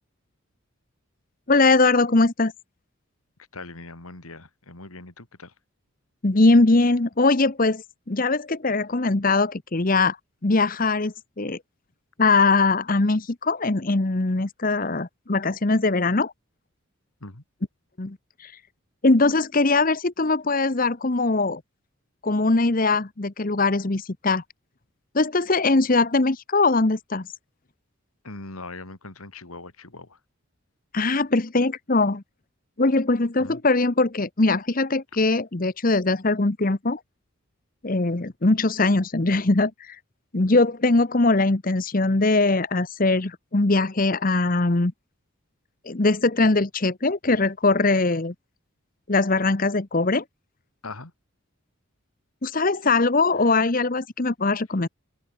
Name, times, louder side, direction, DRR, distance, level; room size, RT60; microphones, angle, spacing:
voice 1, 1.5-2.5 6.2-10.2 10.4-11.6 12.2-16.3 18.0-18.5 19.0-21.6 22.2-24.4 25.1-27.3 30.9-32.2 32.8-37.0 37.8-40.0 40.3-44.9 45.9-48.3 49.1-50.2 52.4-54.9, left 3 dB, 40° left, 1.0 m, -21 dB
voice 2, 3.5-5.5 17.2-17.4 28.2-30.2 33.4-33.6 50.8-51.1, left 3 dB, 85° left, 3.0 m, -40 dB
head